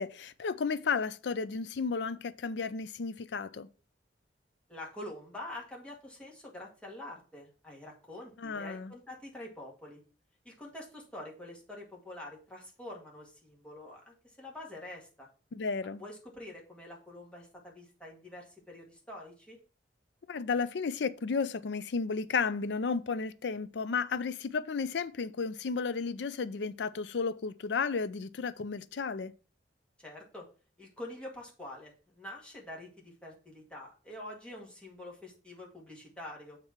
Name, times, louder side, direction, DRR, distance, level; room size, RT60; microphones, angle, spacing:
voice 1, 0.0-3.7 8.4-8.9 15.5-16.0 20.3-29.3, left 5 dB, 70° left, 0.5 m, -33 dB
voice 2, 4.7-10.0 10.5-15.3 16.0-19.6 30.0-30.5 30.8-36.6, left 1 dB, 5° left, 1.9 m, -46 dB
7.3 x 3.3 x 5.9 m
head